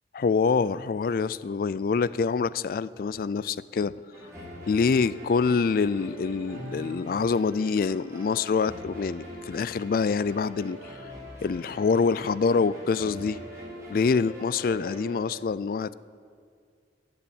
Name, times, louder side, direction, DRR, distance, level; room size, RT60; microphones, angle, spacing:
voice 1, 0.1-4.0 4.7-11.0 11.4-13.4 13.9-15.9, left 5 dB, 50° left, 18 dB, 0.3 m, -26 dB
sound 1, 4.1-15.2, equal, 15° right, 4.3 m, -43 dB
15.0 x 7.1 x 9.4 m, 2.1 s
head